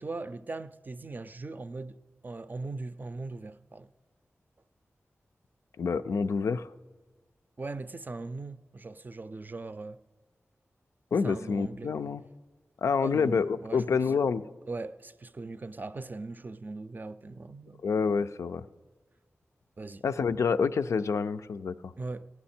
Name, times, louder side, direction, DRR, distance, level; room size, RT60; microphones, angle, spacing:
voice 1, 0.0-2.0 2.2-3.9 7.6-10.0 11.2-11.9 13.0-14.0 14.7-17.8 19.8-20.0 22.0-22.2, right 3 dB, 40° right, 0.4 m, -40 dB
voice 2, 5.8-6.7 11.1-12.2 12.8-14.4 17.8-18.6 20.0-21.9, left 5 dB, 90° left, 0.3 m, -27 dB
14.5 x 9.6 x 4.3 m
wide cardioid pair, 65°, 5 cm